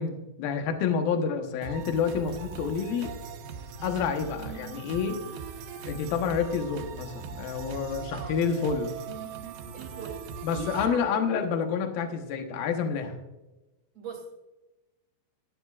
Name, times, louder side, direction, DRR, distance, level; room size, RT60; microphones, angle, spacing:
voice 1, 0.0-3.1 3.8-5.2 5.8-8.9 10.4-13.2, left 6 dB, 70° left, 6 dB, 2.7 m, -28 dB
sound 1, 1.6-10.9, right 6 dB, 85° right, 3.2 m, -40 dB
voice 2, 9.7-10.2 10.5-11.4 13.9-14.3, right 3 dB, 35° right, 0 dB, 1.8 m, -41 dB
17.0 x 11.5 x 2.4 m, 1.0 s
omnidirectional pair, 4.9 m